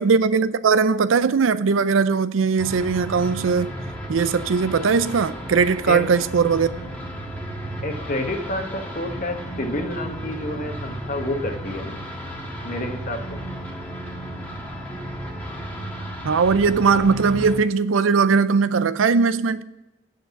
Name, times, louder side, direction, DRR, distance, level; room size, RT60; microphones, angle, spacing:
voice 1, 0.0-3.7 4.1-6.7 16.2-19.6, right 5 dB, 90° right, 0.5 m, -19 dB
sound 1, 2.6-17.6, right 1 dB, 10° left, 1.5 m, -34 dB
voice 2, 7.8-12.0 12.6-13.4, left 1 dB, 40° left, 1.2 m, -29 dB
9.3 x 6.4 x 5.9 m
head